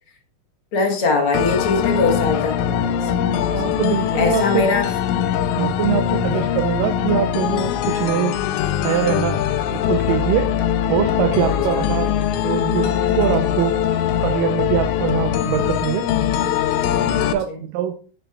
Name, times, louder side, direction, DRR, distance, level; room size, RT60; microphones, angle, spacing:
voice 1, 0.7-3.1 4.1-4.9 5.5-5.7 6.3-6.4 11.4-11.8 17.2-17.6, left 4 dB, 55° left, 3 dB, 1.6 m, -22 dB
sound 1, 1.3-17.3, left 9 dB, 80° left, 1.8 m, -21 dB
voice 2, 3.5-4.6 5.6-8.4 8.8-9.4 9.7-10.5 10.8-12.1 12.4-13.7 14.2-16.0 17.3-18.0, right 11 dB, 80° right, 6 dB, 2.3 m, -23 dB
12.0 x 6.9 x 2.3 m, 0.39 s
omnidirectional pair, 4.0 m